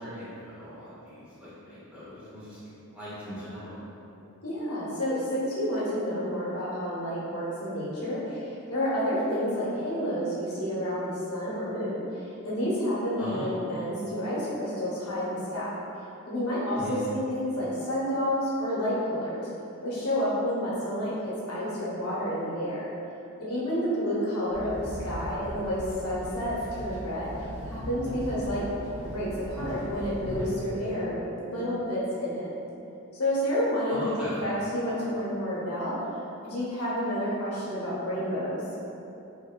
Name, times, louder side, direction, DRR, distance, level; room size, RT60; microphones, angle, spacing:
voice 1, 0.0-3.8 13.2-13.6 16.7-17.0 33.9-34.4, equal, 5° right, -12 dB, 0.8 m, -39 dB
voice 2, 4.4-15.7 16.2-19.5 19.8-22.8 23.4-27.3 27.7-28.6 29.1-32.5 33.1-36.0 36.4-38.6, equal, 80° left, -9 dB, 0.9 m, -30 dB
Walk footsteps / Chatter / Hiss, 24.5-30.5, equal, 55° right, 1.1 m, -38 dB
2.9 x 2.6 x 2.2 m, 2.8 s
head